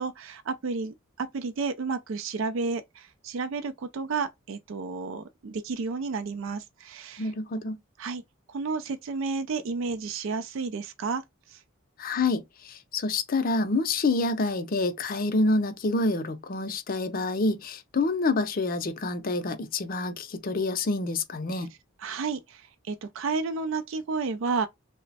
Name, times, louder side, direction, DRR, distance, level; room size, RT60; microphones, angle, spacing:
voice 1, 0.0-7.3 8.0-8.2 8.5-11.6 21.6-21.7 22.0-24.7, right 4 dB, 65° right, 0.4 m, -32 dB
voice 2, 7.2-7.8 12.0-21.7, left 3 dB, 45° left, 0.5 m, -27 dB
3.1 x 2.1 x 4.0 m
head